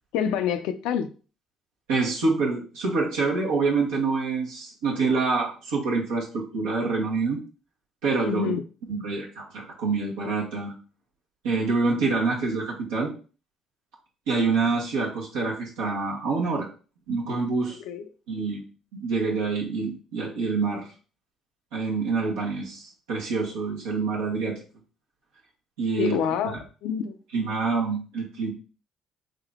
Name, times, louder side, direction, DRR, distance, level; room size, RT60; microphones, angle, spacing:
voice 1, 0.1-1.1 8.3-8.6 17.9-18.1 26.0-27.2, left 8 dB, 80° left, 0.4 m, -27 dB
voice 2, 1.9-7.4 8.0-8.5 8.9-10.7 11.4-13.1 14.3-16.7 17.1-17.8 18.3-18.6 18.9-20.9 21.7-24.6 25.8-26.2 26.5-26.6 27.3-28.5, right 4 dB, 90° right, 1.1 m, -26 dB
3.6 x 2.7 x 3.5 m
supercardioid pair, 65°, 0 cm